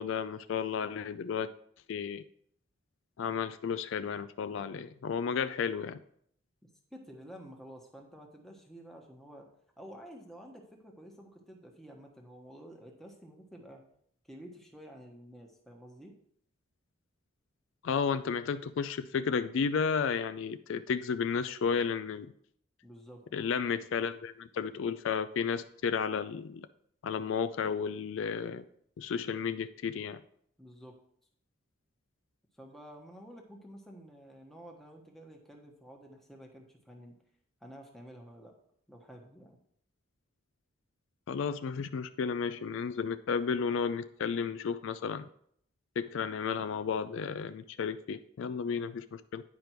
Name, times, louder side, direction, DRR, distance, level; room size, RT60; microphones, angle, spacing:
voice 1, 0.0-1.5 1.9-2.2 3.2-6.0 17.8-22.3 23.3-26.7 27.0-28.6 29.0-30.2 41.3-45.3 46.0-49.4, left 6 dB, 70° left, 12 dB, 0.3 m, -33 dB
voice 2, 6.9-9.5 9.8-13.8 14.3-16.1 22.8-23.2 30.6-31.0 32.6-37.1 37.6-38.5 38.9-39.6, equal, ahead, 1 dB, 1.1 m, -50 dB
9.6 x 5.1 x 4.5 m, 0.67 s
head